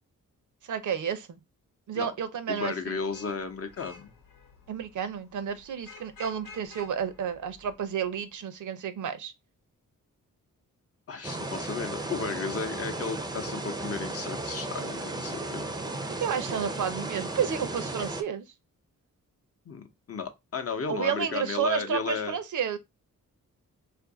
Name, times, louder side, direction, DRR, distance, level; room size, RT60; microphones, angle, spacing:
voice 1, 0.7-1.4 1.9-3.0 4.7-9.3 16.2-18.4 20.9-22.8, right 7 dB, 65° right, 0.6 m, -31 dB
voice 2, 2.5-4.1 11.1-15.7 19.7-22.4, left 5 dB, 45° left, 0.7 m, -34 dB
Vehicle horn car horn honking / Traffic noise roadway noise, 2.9-8.2, left 4 dB, 85° left, 1.0 m, -52 dB
sound 1, 11.2-18.2, right 2 dB, 15° right, 0.5 m, -35 dB
2.6 x 2.5 x 3.6 m
cardioid pair, 80°, 33 cm